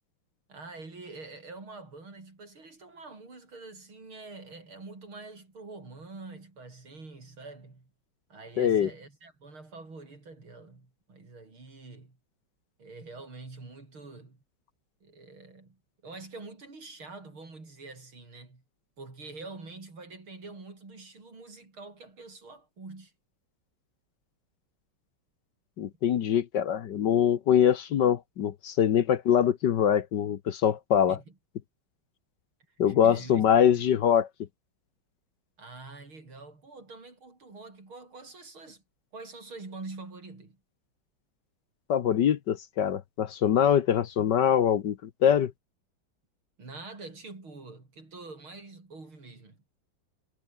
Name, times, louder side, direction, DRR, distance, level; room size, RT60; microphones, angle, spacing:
voice 1, 0.5-7.9 8.3-12.2 12.8-14.4 15.0-18.6 19.0-23.1 25.8-25.9 26.2-26.3 31.1-31.4 32.9-33.9 35.6-38.8 39.1-40.6 46.6-49.6, right 3 dB, 75° right, 6.5 m, -46 dB
voice 2, 8.6-8.9 25.8-31.2 32.8-34.3 41.9-45.0 45.2-45.5, left 9 dB, 60° left, 1.6 m, -23 dB
omnidirectional pair, 2.3 m